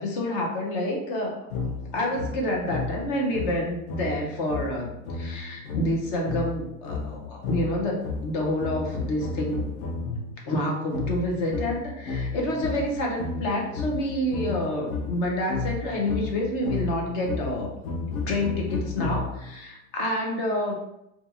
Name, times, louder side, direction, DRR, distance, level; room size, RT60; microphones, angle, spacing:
voice 1, 0.0-1.4 1.9-9.6 10.0-10.2 10.5-17.7 18.3-20.8, left 1 dB, 25° left, 0 dB, 0.4 m, -28 dB
sound 1, 1.5-10.3 10.9-19.6, left 4 dB, 80° left, 0.7 m, -32 dB
2.4 x 2.3 x 2.7 m, 0.83 s
supercardioid pair, 155°, 42 cm